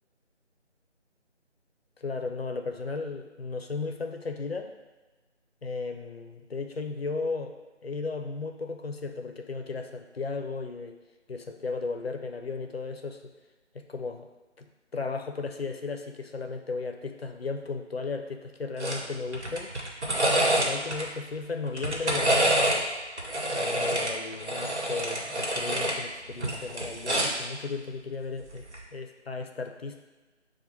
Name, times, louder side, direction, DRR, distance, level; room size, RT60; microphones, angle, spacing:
voice 1, 2.0-4.7 5.6-11.0 11.3-13.3 13.7-14.3 14.6-14.7 14.9-19.7 20.6-22.9 23.5-28.6 28.9-30.0, left 4 dB, 60° left, 5 dB, 0.5 m, -35 dB
sound 1, 18.8-19.0 19.3-21.0 21.7-22.8 23.2-26.0 26.3-27.4 28.6-28.8, right 1 dB, 70° right, 1.1 m, -27 dB
6.4 x 2.2 x 3.0 m, 1.2 s
figure-of-eight pair, 165°, 35 cm